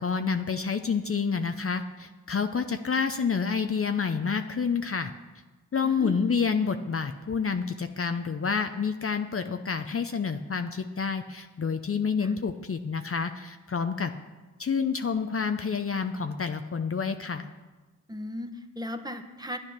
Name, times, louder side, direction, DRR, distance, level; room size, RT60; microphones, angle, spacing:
voice 1, 0.0-5.1 5.7-14.1 14.6-17.5, left 5 dB, 40° left, 7 dB, 0.7 m, -28 dB
voice 2, 5.8-6.4 12.2-12.3 18.1-19.6, equal, 10° right, 6 dB, 1.3 m, -37 dB
11.5 x 9.8 x 5.9 m, 1.2 s
cardioid pair, 50°, 33 cm